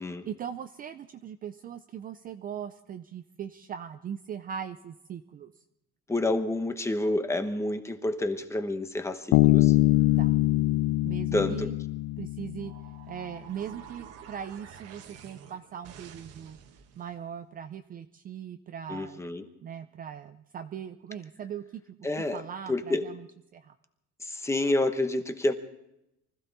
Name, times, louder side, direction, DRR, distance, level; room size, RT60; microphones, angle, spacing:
voice 1, 0.3-5.5 10.2-10.4 11.0-11.8 12.2-12.7 13.1-16.6 17.0-19.2 19.6-22.1 22.3-23.3 23.5-23.7, right 8 dB, 30° right, 9 dB, 0.5 m, -40 dB
voice 2, 6.1-9.8 11.3-11.7 18.9-19.4 22.0-22.4 22.7-23.1 24.2-25.5, left 2 dB, 10° left, 8 dB, 1.0 m, -29 dB
Bass guitar, 9.3-12.9, left 18 dB, 85° left, 0.5 m, -23 dB
sound 1, 12.6-17.1, right 8 dB, 50° right, 1.4 m, -49 dB
24.5 x 15.0 x 4.0 m, 0.84 s
cardioid pair, 165°, 31 cm